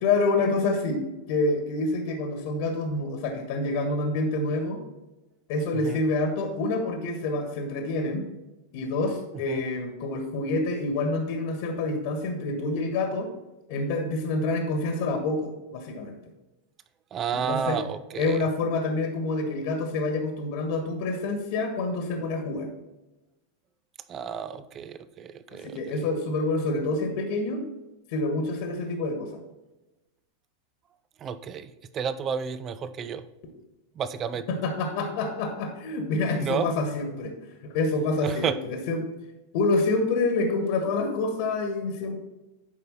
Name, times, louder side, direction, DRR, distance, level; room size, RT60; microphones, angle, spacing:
voice 1, 0.0-4.8 5.5-8.2 8.7-13.3 13.7-16.1 17.3-17.8 18.2-22.7 25.6-27.6 28.1-29.3 34.5-37.4 37.7-39.1 39.5-42.2, left 2 dB, 50° left, 4 dB, 1.5 m, -27 dB
voice 2, 17.1-18.4 24.1-26.0 31.2-33.2 34.0-34.5 36.4-36.7 38.2-38.6, right 7 dB, 30° right, 14 dB, 0.5 m, -31 dB
11.0 x 5.3 x 4.1 m, 1.0 s
figure-of-eight pair, 90°, 0 cm